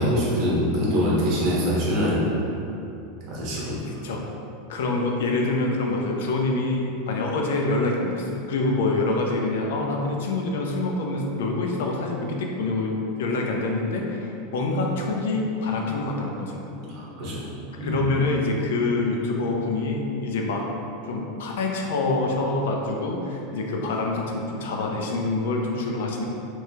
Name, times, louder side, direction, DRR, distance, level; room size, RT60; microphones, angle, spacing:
voice 1, 0.0-2.2 3.3-3.8 16.8-17.4 17.8-18.1, equal, 45° right, -6 dB, 1.1 m, -24 dB
voice 2, 4.7-16.6 17.8-20.6 21.0-26.3, left 2 dB, 80° left, 0 dB, 0.5 m, -26 dB
3.3 x 3.0 x 2.8 m, 2.8 s
supercardioid pair, 155°, 0 cm